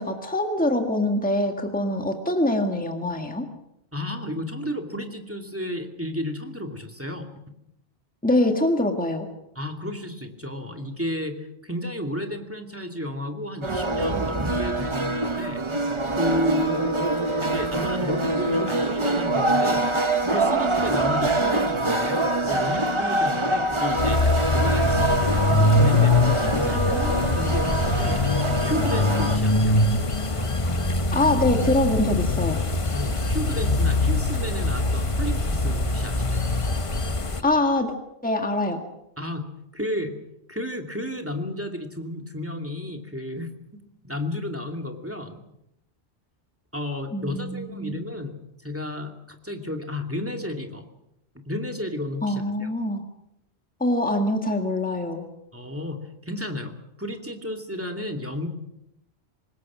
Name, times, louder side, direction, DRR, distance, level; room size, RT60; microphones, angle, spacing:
voice 1, 0.0-3.5 8.2-9.3 31.1-32.6 37.4-37.9 38.2-38.8 47.1-48.0 52.2-53.0 53.8-55.3, left 1 dB, 5° left, 4 dB, 1.8 m, -24 dB
voice 2, 3.9-7.3 9.6-15.6 16.1-17.1 17.4-19.9 20.3-24.2 24.5-28.2 28.6-29.8 32.9-36.5 39.2-39.4 39.7-40.2 40.5-43.5 44.0-45.4 46.7-48.3 48.6-50.8 51.5-52.7 55.5-56.0 56.2-58.5, left 1 dB, 10° right, 4 dB, 2.5 m, -32 dB
sound 1, 13.6-29.4, right 2 dB, 25° right, 1.1 m, -24 dB
sound 2, 24.0-37.4, left 2 dB, 30° left, 1.1 m, -23 dB
25.5 x 20.5 x 6.2 m, 0.82 s
omnidirectional pair, 1.1 m